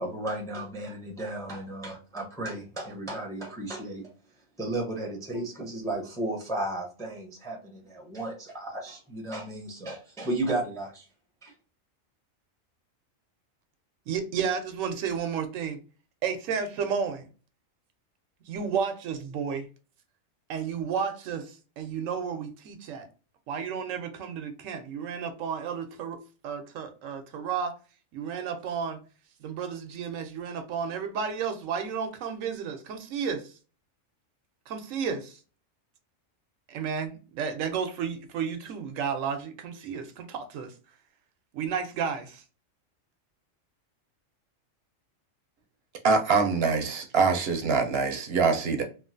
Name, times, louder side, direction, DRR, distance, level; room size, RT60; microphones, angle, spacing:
voice 1, 0.0-4.1 4.6-11.1 11.4-11.5, right 2 dB, 5° left, 0.5 m, -34 dB
voice 2, 14.1-15.8 16.2-17.3 18.5-19.7 20.5-23.1 23.5-27.7 28.1-29.0 29.4-33.5 34.7-35.4 36.7-40.7 41.5-42.4, right 6 dB, 85° right, 1.0 m, -32 dB
voice 3, 46.0-48.8, right 4 dB, 60° right, 0.7 m, -24 dB
3.1 x 2.3 x 2.5 m
omnidirectional pair, 1.3 m